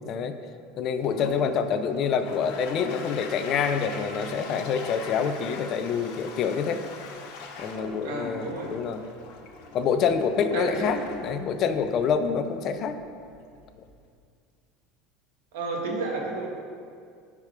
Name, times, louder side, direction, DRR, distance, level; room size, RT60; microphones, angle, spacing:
voice 1, 0.0-0.4 0.8-6.8 7.6-9.0 9.7-13.0, left 6 dB, 40° left, 9 dB, 0.5 m, -26 dB
Toilet flush, 0.9-14.1, left 4 dB, 65° left, 1.0 m, -42 dB
voice 2, 8.0-8.7 10.5-10.7 15.5-16.5, right 3 dB, 90° right, -1 dB, 1.9 m, -31 dB
11.0 x 4.9 x 5.0 m, 2.3 s
cardioid pair, 155°, 0 cm